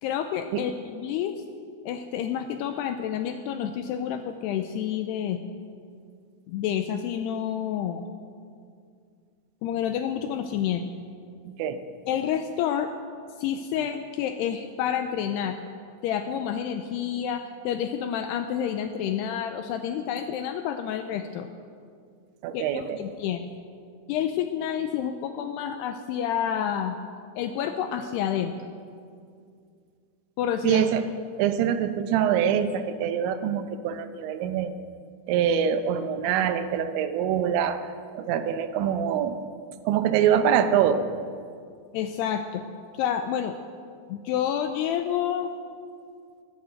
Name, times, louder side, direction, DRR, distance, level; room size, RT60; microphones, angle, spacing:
voice 1, 0.0-1.4 1.9-5.4 6.5-8.0 9.6-10.9 12.1-12.9 13.4-15.6 16.0-21.5 22.5-23.4 24.1-27.0 27.4-28.5 30.4-30.9 41.9-42.6 42.9-43.6 44.1-45.5, left 9 dB, 85° left, 7 dB, 2.4 m, -29 dB
voice 2, 22.4-23.0 30.6-31.1 31.4-34.7 35.3-37.8 38.1-39.4 39.9-41.0, right 9 dB, 80° right, 9 dB, 3.1 m, -24 dB
18.0 x 8.3 x 7.9 m, 2.3 s
omnidirectional pair, 5.3 m